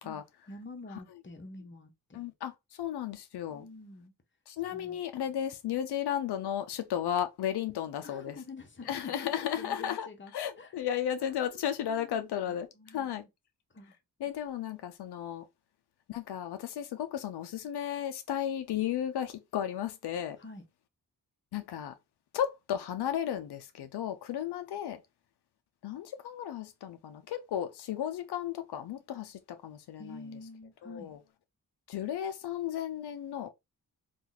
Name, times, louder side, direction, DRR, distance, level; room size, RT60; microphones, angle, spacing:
voice 1, 0.0-2.2 3.5-4.1 4.7-5.0 8.0-10.7 11.3-13.3 13.7-13.9 20.4-20.6 30.0-31.1, left 3 dB, 30° left, 0.9 m, -48 dB
voice 2, 2.1-3.6 4.5-8.4 8.9-13.2 14.2-15.4 16.1-20.4 21.5-21.9 22.3-25.0 25.8-30.2 30.8-31.2 31.9-33.5, left 10 dB, 85° left, 0.5 m, -34 dB
2.8 x 2.4 x 3.9 m
cardioid pair, 75°, 38 cm